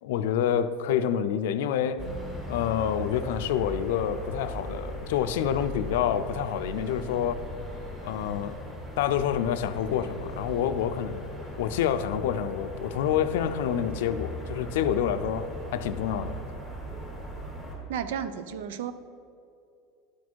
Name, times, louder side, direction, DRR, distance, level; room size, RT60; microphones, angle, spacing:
voice 1, 0.0-2.1 2.5-7.4 8.0-8.6 9.0-16.4, left 9 dB, 75° left, 11 dB, 0.4 m, -28 dB
sound 1, 2.0-17.8, equal, 15° right, 1.9 m, -38 dB
voice 2, 17.9-18.9, right 8 dB, 85° right, 12 dB, 0.5 m, -33 dB
11.5 x 4.2 x 4.6 m, 2.5 s
supercardioid pair, 170°, 0 cm